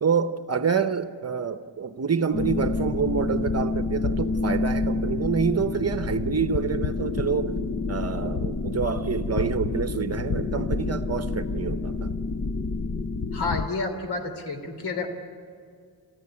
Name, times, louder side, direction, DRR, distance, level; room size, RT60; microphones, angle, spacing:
voice 1, 0.0-7.6 7.9-12.1, right 6 dB, 40° right, 0.9 m, -27 dB
sound 1, 2.3-13.7, left 3 dB, 30° left, 0.6 m, -28 dB
voice 2, 13.3-15.1, left 3 dB, 80° left, 3.2 m, -30 dB
28.5 x 14.5 x 10.0 m
wide cardioid pair, 160°, 39 cm